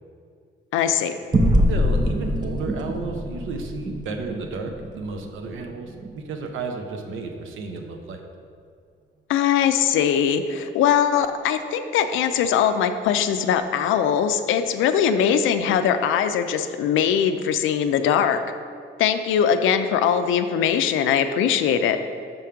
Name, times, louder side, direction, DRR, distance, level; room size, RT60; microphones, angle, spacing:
voice 1, 0.7-1.1 9.3-18.4 19.0-22.0, left 8 dB, 85° left, 9 dB, 0.4 m, -21 dB
sound 1, 1.3-6.1, equal, 20° right, 0.7 m, -24 dB
voice 2, 1.7-8.2, right 4 dB, 85° right, 4 dB, 0.7 m, -32 dB
5.3 x 3.6 x 5.7 m, 2.3 s
cardioid pair, 90°, 20 cm